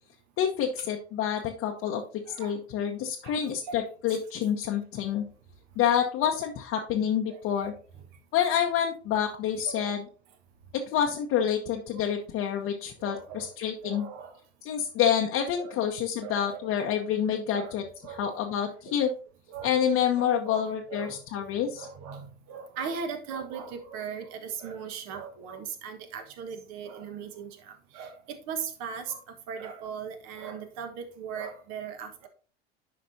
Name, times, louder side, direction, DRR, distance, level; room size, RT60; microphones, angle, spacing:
voice 1, 0.4-2.0 2.4-5.2 5.8-7.7 8.3-10.0 10.7-14.1 14.6-17.8 18.2-19.1 19.6-21.9, left 9 dB, 45° left, 1 dB, 0.9 m, -28 dB
voice 2, 7.3-7.7 9.7-9.9 13.0-13.5 13.8-14.4 15.6-15.8 16.2-16.7 17.5-17.7 18.0-18.4 18.9-19.0 19.5-19.7 20.2-21.5 21.7-28.2 28.5-29.2 29.5-32.3, right 6 dB, 50° right, 7 dB, 1.4 m, -39 dB
10.5 x 5.1 x 2.7 m, 0.40 s
figure-of-eight pair, 80°, 33 cm